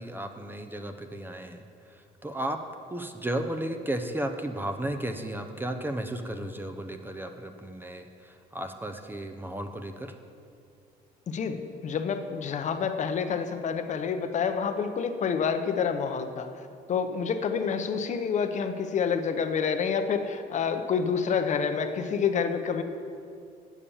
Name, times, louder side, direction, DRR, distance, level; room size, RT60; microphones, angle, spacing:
voice 1, 0.0-1.6 1.9-2.6 2.9-10.1, right 1 dB, 10° right, 6 dB, 0.6 m, -34 dB
voice 2, 11.3-16.5 16.9-22.8, left 6 dB, 45° left, 7 dB, 0.7 m, -28 dB
8.4 x 7.2 x 7.0 m, 2.4 s
cardioid pair, 110°, 17 cm